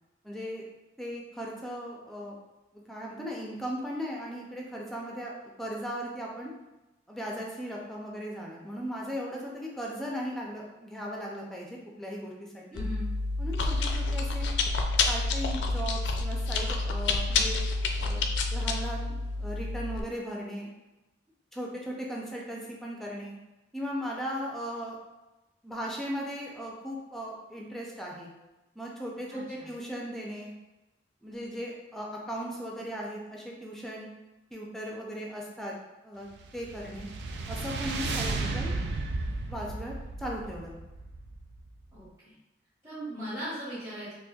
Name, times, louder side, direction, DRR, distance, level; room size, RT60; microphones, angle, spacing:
voice 1, 0.2-0.6 1.0-2.4 2.7-5.3 5.6-6.5 7.1-12.8 13.4-14.5 15.1-17.7 18.0-20.7 21.5-23.4 23.7-25.0 25.6-28.3 28.8-30.5 31.2-34.1 34.5-35.7 36.0-36.3 36.5-37.1 37.5-38.7 39.5-40.8, equal, ahead, -3 dB, 0.4 m, -37 dB
voice 2, 12.7-13.1 29.3-29.7 38.2-38.6 41.9-42.3 42.8-44.1, equal, 15° right, -14 dB, 1.1 m, -39 dB
Chewing mastication, 12.8-20.0, left 3 dB, 75° left, 0.3 m, -29 dB
sound 1, 36.3-41.8, right 3 dB, 65° right, 0.3 m, -34 dB
4.1 x 2.4 x 2.3 m, 1.0 s
head